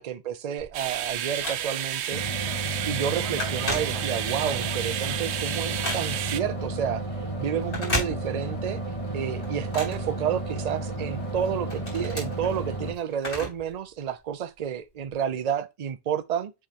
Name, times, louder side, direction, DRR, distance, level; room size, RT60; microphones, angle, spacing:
voice 1, 0.0-2.2 2.9-8.8 9.1-16.5, right 8 dB, 45° right, 0.6 m, -30 dB
Telephone, 0.6-2.0 2.5-2.7 3.0-4.5 4.9-6.4 7.6-8.7 9.0-10.8 11.2-13.7 14.0-14.1 15.0-15.1, left 1 dB, 80° left, 4.0 m, -34 dB
sound 1, 0.7-6.4, right 10 dB, 80° right, 0.9 m, -31 dB
sound 2, 2.1-12.9, right 2 dB, 30° left, 2.8 m, -32 dB
7.3 x 4.8 x 2.9 m
omnidirectional pair, 1.1 m